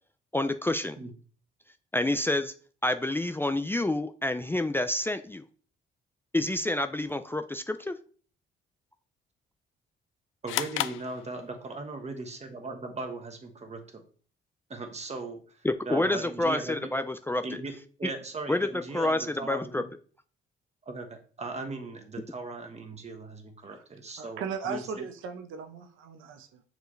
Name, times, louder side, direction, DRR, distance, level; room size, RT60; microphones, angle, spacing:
voice 1, 0.3-1.0 1.9-2.5 2.8-5.4 6.3-7.9 15.6-17.4 18.0-18.1 18.5-18.7 18.9-19.8, left 1 dB, 10° left, 0.4 m, -28 dB
voice 2, 10.4-14.0 14.7-15.4 15.9-16.9 17.4-17.7 18.0-19.9 20.8-25.1, right 3 dB, 35° right, 1.4 m, -38 dB
sound 1, 10.5-11.9, left 14 dB, 85° left, 0.4 m, -33 dB
voice 3, 24.2-26.6, right 6 dB, 90° right, 0.9 m, -37 dB
6.7 x 4.6 x 3.2 m
cardioid pair, 90°, 20 cm